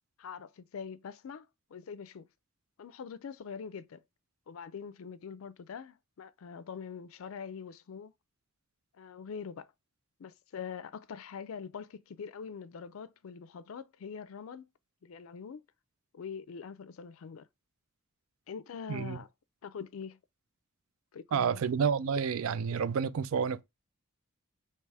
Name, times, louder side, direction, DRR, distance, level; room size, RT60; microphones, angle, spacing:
voice 1, 0.2-2.3 2.8-4.0 4.5-8.1 9.0-9.7 10.2-14.7 15.0-15.6 16.1-17.5 18.5-19.3 19.6-20.2 21.1-21.6, left 6 dB, 75° left, 0.4 m, -43 dB
voice 2, 21.3-23.6, right 6 dB, 75° right, 0.4 m, -29 dB
3.3 x 2.9 x 4.6 m
head